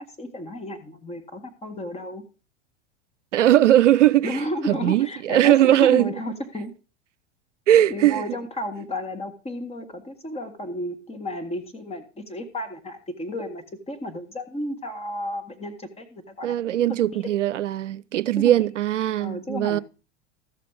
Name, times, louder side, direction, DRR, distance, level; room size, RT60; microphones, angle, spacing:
voice 1, 0.2-2.2 4.2-6.7 7.9-17.3 18.4-18.6 19.2-19.8, left 1 dB, 15° left, 2.0 m, -33 dB
voice 2, 3.3-4.4 4.7-6.1 7.7-8.2 16.4-19.8, right 12 dB, 80° right, 0.6 m, -19 dB
14.0 x 6.8 x 5.1 m
hypercardioid pair, 90°, 36 cm